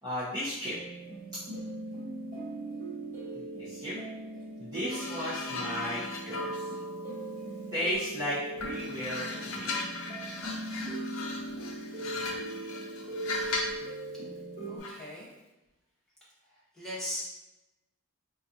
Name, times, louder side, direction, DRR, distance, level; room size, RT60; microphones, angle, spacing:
voice 1, 0.0-0.8 1.3-1.4 3.3-3.9 4.6-6.8 7.7-9.7, equal, 20° right, -11 dB, 0.8 m, -35 dB
sound 1, 0.6-14.8, right 2 dB, 35° right, 1.5 m, -39 dB
sound 2, 4.9-8.1 8.6-13.9 14.8-15.1, left 3 dB, 65° left, 0.6 m, -38 dB
voice 2, 12.0-12.3 14.7-15.3 16.5-17.2, equal, ahead, -10 dB, 1.3 m, -40 dB
4.1 x 2.5 x 2.7 m, 0.99 s
head